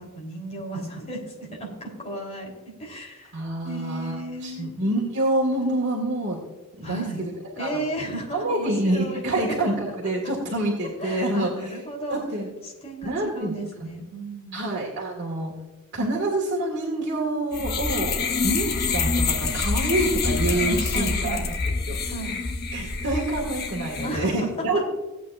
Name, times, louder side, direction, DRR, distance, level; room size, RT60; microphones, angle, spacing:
voice 1, 0.0-2.5 2.8-4.7 6.8-7.3 7.6-9.6 10.0-10.3 11.0-12.2 12.6-14.7 20.6-21.5 22.0-22.3 24.0-24.8, right 1 dB, 30° left, -1 dB, 3.3 m, -34 dB
voice 2, 3.3-6.4 6.8-7.3 7.6-7.8 8.3-11.7 12.1-12.5 13.0-13.5 14.5-15.5 15.9-18.2 18.4-21.4 21.9-22.0 22.7-24.8, right 1 dB, 55° right, -2 dB, 1.9 m, -27 dB
sound 1, 17.5-24.2, left 4 dB, 50° left, 1.0 m, -26 dB
17.0 x 8.5 x 2.5 m, 1.2 s
head